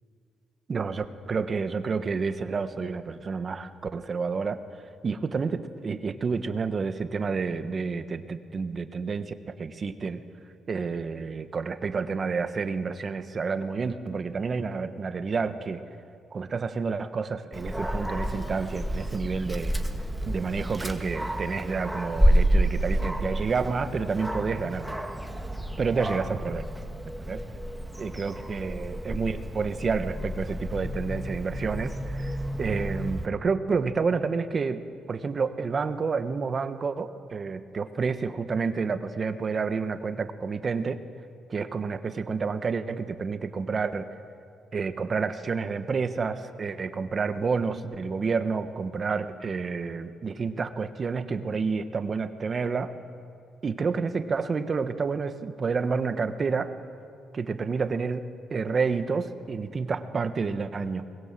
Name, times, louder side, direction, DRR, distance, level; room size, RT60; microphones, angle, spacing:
voice 1, 0.7-4.6 5.0-10.2 10.7-15.8 16.3-19.7 20.2-25.0 25.8-26.6 27.3-27.4 28.0-41.0 41.5-44.1 44.7-52.9 53.6-56.7 57.3-61.1, right 5 dB, 40° right, 10 dB, 1.3 m, -29 dB
Dog, 17.5-33.3, equal, 5° right, 1.9 m, -29 dB
23.5 x 21.0 x 7.6 m, 2.4 s
cardioid pair, 90°, 0 cm